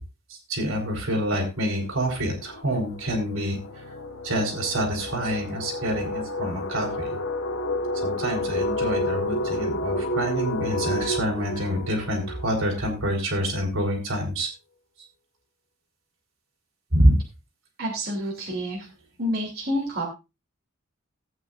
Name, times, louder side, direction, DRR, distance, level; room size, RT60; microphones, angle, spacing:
voice 1, 0.3-3.6 4.2-7.2 8.0-14.5 16.9-17.1, equal, 70° right, 2 dB, 4.2 m, -26 dB
sound 1, 1.7-13.2, left 1 dB, 80° left, 1.3 m, -30 dB
voice 2, 17.8-18.8 19.2-20.0, equal, 45° right, -3 dB, 3.1 m, -28 dB
17.0 x 8.9 x 2.5 m, 0.26 s
head